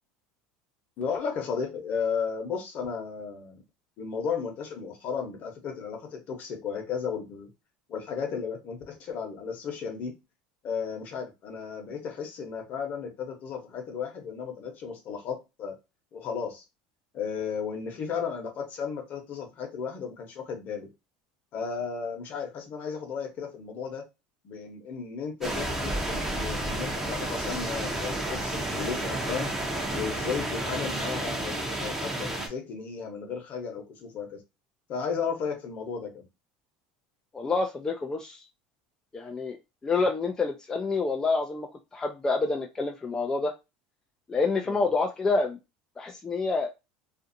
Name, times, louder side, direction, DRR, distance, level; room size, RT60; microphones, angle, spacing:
voice 1, 1.0-3.6 4.0-7.5 7.9-10.1 10.6-15.8 16.1-16.6 17.1-20.9 21.5-24.0 24.4-29.5 29.9-34.4 34.9-36.2 44.6-44.9, left 6 dB, 50° left, 3 dB, 1.0 m, -34 dB
sound 1, 25.4-32.5, right 1 dB, 10° right, 0.7 m, -31 dB
voice 2, 37.3-38.4 39.1-39.6 39.8-43.5 44.3-45.6 46.0-46.7, left 3 dB, 20° left, 2 dB, 0.4 m, -28 dB
2.6 x 2.4 x 2.6 m, 0.24 s
supercardioid pair, 110°, 4 cm